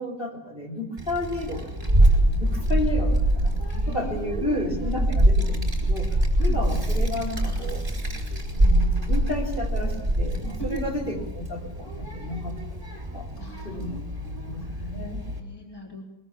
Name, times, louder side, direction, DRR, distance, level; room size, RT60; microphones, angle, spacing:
voice 1, 0.0-3.5 3.9-7.9 8.5-12.8 13.1-13.3 13.6-13.9 14.5-15.2, left 2 dB, 30° left, 0 dB, 3.6 m, -32 dB
Child speech kid speaking, 1.0-15.4, right 1 dB, 20° right, 4.4 m, -24 dB
voice 2, 3.7-4.6 6.4-6.6 10.6-11.0 13.4-14.6 15.3-16.1, right 2 dB, 15° left, 0 dB, 3.3 m, -40 dB
22.0 x 21.5 x 7.2 m, 0.93 s
omnidirectional pair, 1.8 m